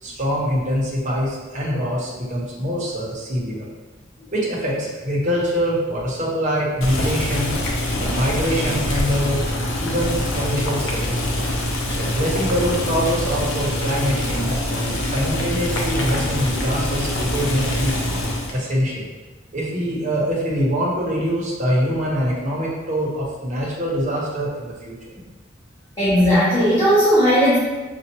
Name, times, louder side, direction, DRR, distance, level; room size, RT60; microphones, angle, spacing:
voice 1, 0.0-3.7 4.3-7.6 8.0-9.4 9.8-11.4 11.9-18.0 18.5-19.1 19.5-25.1, equal, 40° right, -5 dB, 1.0 m, -24 dB
Boiling, 6.8-18.6, left 1 dB, 75° left, 0.7 m, -24 dB
voice 2, 26.0-27.6, equal, 20° left, -12 dB, 1.0 m, -16 dB
5.3 x 2.5 x 2.9 m, 1.2 s
head